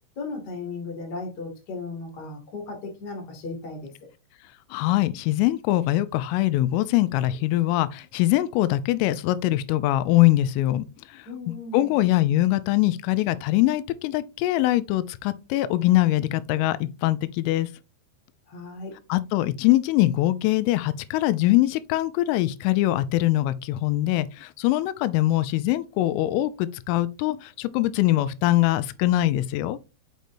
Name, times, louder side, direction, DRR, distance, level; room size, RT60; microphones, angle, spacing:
voice 1, 0.1-3.9 11.2-12.0 18.5-19.0, left 3 dB, 60° left, 1.0 m, -36 dB
voice 2, 4.7-11.3 11.7-17.7 19.1-29.8, left 15 dB, 90° left, 3.1 m, -23 dB
6.6 x 6.2 x 2.6 m
omnidirectional pair, 5.6 m